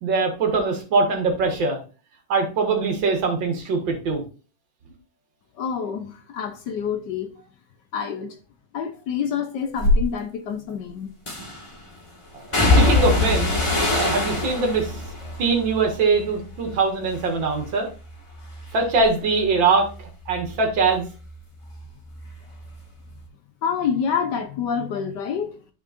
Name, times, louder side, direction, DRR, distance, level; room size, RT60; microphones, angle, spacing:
voice 1, 0.0-1.8 2.3-4.2 12.3-12.4 12.7-13.6 14.0-14.9 15.4-17.9 18.7-19.9 20.3-21.1, right 4 dB, 80° right, 2.4 m, -22 dB
voice 2, 5.6-7.3 7.9-8.4 8.7-11.1 23.6-25.5, left 7 dB, 70° left, 1.3 m, -27 dB
sound 1, 9.8-10.0 11.3-11.7 12.5-16.8 17.1-17.7 18.1-21.4 21.6-22.8 23.0-23.2, left 2 dB, 15° left, 1.8 m, -24 dB
12.0 x 4.6 x 2.5 m
omnidirectional pair, 2.0 m